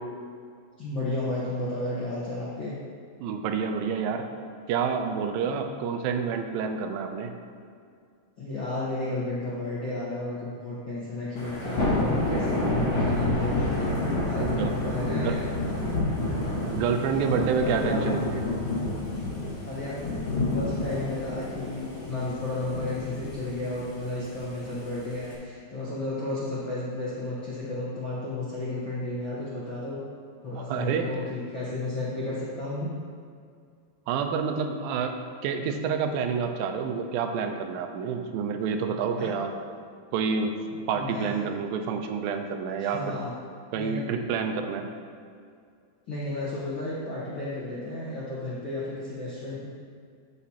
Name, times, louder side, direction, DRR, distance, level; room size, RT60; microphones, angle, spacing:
voice 1, 0.8-2.8 8.4-13.7 14.2-14.5 14.8-15.5 17.1-18.2 19.6-20.0 20.5-30.1 30.4-32.9 39.1-39.4 40.9-41.4 42.8-43.3 43.7-44.1 46.1-49.7, left 2 dB, 70° left, -8 dB, 1.1 m, -33 dB
voice 2, 3.2-4.3 4.7-7.3 14.4-14.7 15.1-15.4 16.7-18.4 30.5-31.1 34.1-39.5 40.1-43.2 43.7-44.9, right 6 dB, 85° right, 6 dB, 2.4 m, -28 dB
Thunder / Rain, 11.4-25.3, left 2 dB, 50° left, 2.6 m, -29 dB
14.0 x 5.1 x 2.9 m, 2.2 s
omnidirectional pair, 4.1 m